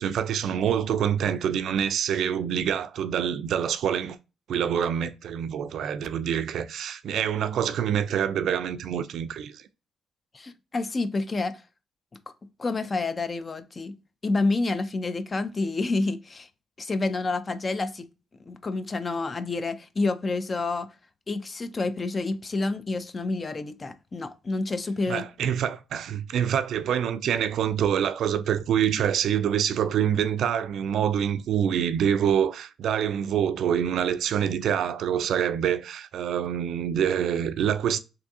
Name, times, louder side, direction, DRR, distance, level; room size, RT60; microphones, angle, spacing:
voice 1, 0.0-4.2 4.5-9.6 25.1-38.0, right 9 dB, 70° right, 0.3 m, -26 dB
voice 2, 10.3-11.6 12.6-14.0 14.2-16.5 16.8-18.1 18.5-20.9 21.3-25.2, left 3 dB, 30° left, 0.4 m, -28 dB
3.4 x 2.6 x 2.6 m
cardioid pair, 90°, 0 cm